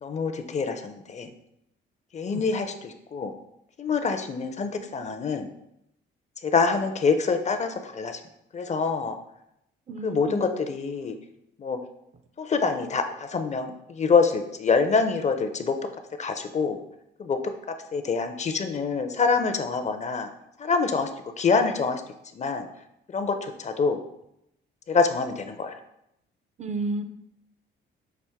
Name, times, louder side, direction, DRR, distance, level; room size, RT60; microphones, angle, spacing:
voice 1, 0.0-1.3 2.1-3.3 3.8-5.5 6.4-8.2 8.5-9.1 10.0-11.1 11.6-11.8 12.4-15.7 16.2-16.8 17.2-17.4 17.9-20.3 20.6-21.1 21.4-22.0 22.3-22.7 23.1-24.0 24.9-25.8, left 4 dB, 35° left, 7 dB, 0.5 m, -25 dB
voice 2, 9.9-10.4 26.6-27.0, right 2 dB, 35° right, 8 dB, 0.4 m, -31 dB
5.9 x 2.5 x 3.5 m, 0.81 s
cardioid pair, 90°, 20 cm